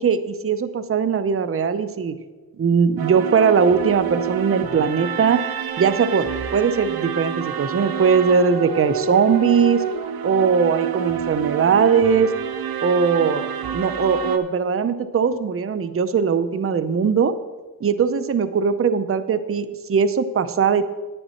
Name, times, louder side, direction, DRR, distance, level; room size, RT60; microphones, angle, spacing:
voice 1, 0.0-2.2 2.6-5.4 5.8-9.8 10.2-12.3 12.8-17.3 17.8-20.8, right 6 dB, 40° right, 12 dB, 0.6 m, -20 dB
sound 1, 3.0-14.4, right 7 dB, 85° right, 0.7 m, -28 dB
10.0 x 9.5 x 4.2 m, 1.3 s
cardioid pair, 70°, 35 cm